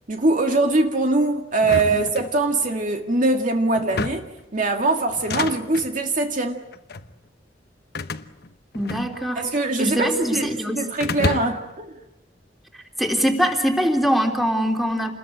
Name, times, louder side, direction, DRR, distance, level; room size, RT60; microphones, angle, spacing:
voice 1, 0.1-6.6 9.4-11.9, right 2 dB, 45° right, 2.1 m, -22 dB
sound 1, 1.6-2.8 3.8-4.4 5.1-5.9 6.7-7.1 7.9-9.5 9.7-10.5 11.0-11.8, left 3 dB, 60° left, 1.1 m, -30 dB
voice 2, 8.7-9.4 9.8-10.8 13.0-15.1, equal, ahead, 3.4 m, -22 dB
29.0 x 21.0 x 8.9 m
head